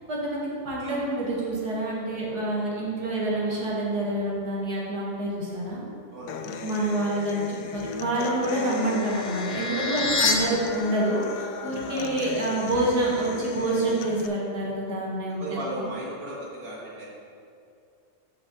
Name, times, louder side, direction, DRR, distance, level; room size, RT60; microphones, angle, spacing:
voice 1, 0.1-5.8 6.4-15.9, right 1 dB, 85° right, -5 dB, 2.4 m, -27 dB
Human voice / Acoustic guitar, 6.3-14.3, left 6 dB, 85° left, 1.2 m, -37 dB
sound 1, 8.1-10.3, left 4 dB, 65° left, 1.3 m, -29 dB
voice 2, 15.4-17.1, right 1 dB, 65° right, -6 dB, 1.8 m, -36 dB
6.5 x 5.7 x 7.0 m, 2.4 s
omnidirectional pair, 1.7 m